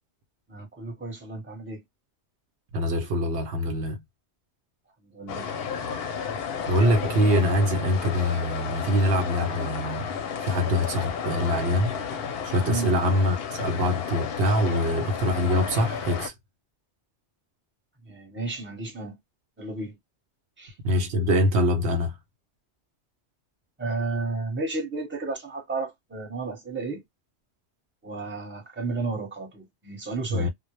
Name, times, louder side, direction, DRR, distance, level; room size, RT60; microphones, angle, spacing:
voice 1, 0.5-1.8 5.0-5.5 12.7-12.9 18.0-19.2 19.6-20.0 20.6-20.7 23.8-27.0 28.0-30.5, right 3 dB, 10° right, 0.9 m, -32 dB
voice 2, 2.7-4.0 6.7-10.1 10.4-12.0 12.4-16.3 20.8-22.1 30.3-30.5, equal, 70° right, 0.9 m, -24 dB
sound 1, 5.3-16.3, left 6 dB, 65° left, 0.7 m, -32 dB
2.1 x 2.1 x 2.9 m
omnidirectional pair, 1.2 m